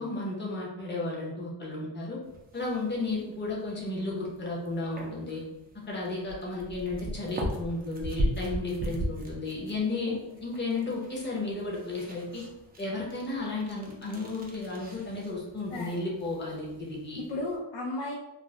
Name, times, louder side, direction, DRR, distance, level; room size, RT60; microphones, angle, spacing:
voice 1, 0.0-2.2 2.5-5.4 5.9-10.2 10.4-12.4 12.8-17.2, left 2 dB, 25° left, -4 dB, 0.7 m, -33 dB
sound 1, 2.2-17.6, right 1 dB, 20° right, 0.3 m, -39 dB
voice 2, 10.1-10.4 15.7-16.0 17.3-18.1, left 2 dB, 60° left, -4 dB, 0.6 m, -35 dB
2.5 x 2.1 x 3.2 m, 0.96 s
cardioid pair, 145°, 47 cm